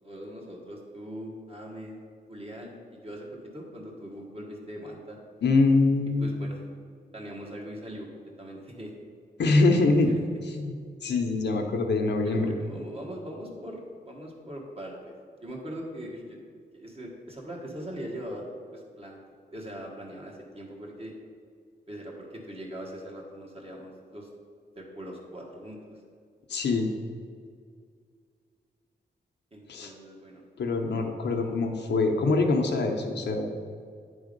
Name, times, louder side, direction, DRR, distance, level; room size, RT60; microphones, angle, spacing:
voice 1, 0.0-2.0 2.3-5.2 6.2-6.6 7.1-8.1 8.4-8.9 10.1-10.3 12.2-15.1 15.4-16.4 16.7-18.4 18.7-19.2 19.5-21.1 21.9-24.3 24.7-26.0 29.5-30.4 31.4-31.6, equal, 35° right, -1 dB, 1.6 m, -41 dB
voice 2, 5.4-6.4 9.4-10.1 10.5-12.5 26.5-26.9 29.7-29.9 30.6-33.5, left 3 dB, 80° left, 3 dB, 0.8 m, -24 dB
9.5 x 3.5 x 5.2 m, 2.1 s
cardioid pair, 80°, 18 cm